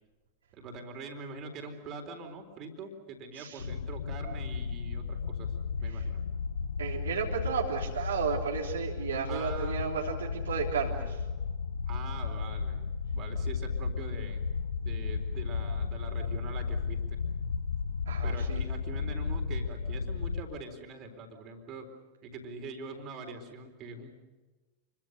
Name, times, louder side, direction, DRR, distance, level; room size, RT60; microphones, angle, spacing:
voice 1, 0.5-5.5 5.8-6.2 9.3-10.0 11.9-12.8 13.1-14.4 14.8-17.2 18.2-21.9 22.2-24.1, right 3 dB, 35° right, 4 dB, 4.1 m, -43 dB
sound 1, 3.6-20.4, left 5 dB, 75° left, 1.0 m, -34 dB
voice 2, 6.8-11.2 18.1-18.6, right 6 dB, 65° right, -1 dB, 3.4 m, -33 dB
29.0 x 23.0 x 6.7 m, 1.2 s
figure-of-eight pair, 90°, 0 cm